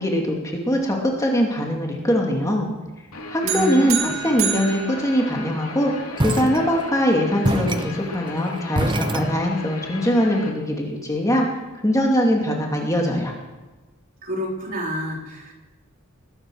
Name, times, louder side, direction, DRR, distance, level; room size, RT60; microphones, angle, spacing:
voice 1, 0.0-2.7 3.3-5.9 6.2-11.5 11.8-13.3, equal, 15° left, 0 dB, 2.5 m, -22 dB
Guitar, 3.1-10.5, left 3 dB, 85° left, 3.2 m, -37 dB
voice 2, 3.4-4.1 14.2-15.5, equal, 40° right, -1 dB, 3.9 m, -28 dB
sound 1, 3.5-5.9, right 8 dB, 65° right, 2.6 m, -29 dB
sound 2, 6.2-7.1 7.4-9.8, right 1 dB, 20° right, 0.8 m, -26 dB
21.5 x 9.8 x 6.5 m, 1.2 s
head